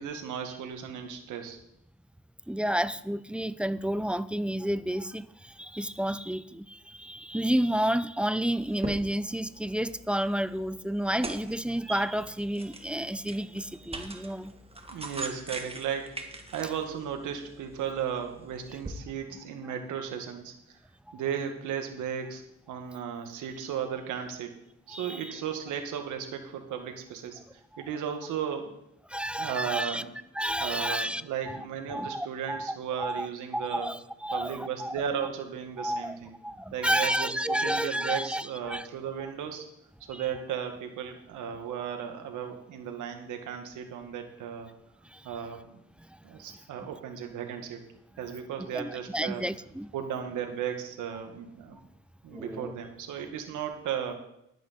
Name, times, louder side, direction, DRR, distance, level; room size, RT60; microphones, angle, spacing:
voice 1, 0.0-1.6 14.9-16.2 16.5-20.8 21.1-22.4 22.7-24.5 24.9-28.8 29.4-30.1 30.6-33.9 34.3-36.4 36.7-39.6 40.1-44.7 45.2-45.8 46.2-47.8 48.2-49.4 49.9-51.8 52.2-54.2, right 8 dB, 85° right, 5 dB, 1.9 m, -35 dB
voice 2, 2.5-14.5 21.1-21.2 24.9-25.4 29.1-30.0 30.4-31.2 31.5-31.6 31.9-33.3 33.5-35.0 35.8-36.2 36.4-38.9 40.1-40.3 45.1-45.3 46.0-46.2 48.7-49.9 52.3-52.7, equal, 5° right, 14 dB, 0.5 m, -31 dB
sound 1, 8.6-18.9, right 2 dB, 20° right, 1.5 m, -43 dB
11.5 x 10.5 x 4.3 m, 0.79 s
cardioid pair, 90°, 30 cm